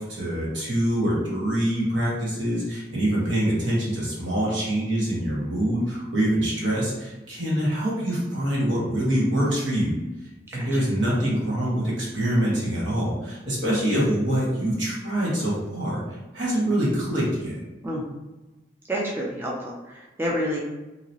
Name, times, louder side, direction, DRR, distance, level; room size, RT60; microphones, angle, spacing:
voice 1, 0.0-9.9 10.5-16.0 16.3-17.6, right 1 dB, 85° right, -6 dB, 1.3 m, -25 dB
voice 2, 18.9-20.6, equal, 10° right, -3 dB, 0.4 m, -29 dB
2.9 x 2.8 x 2.7 m, 1.1 s
head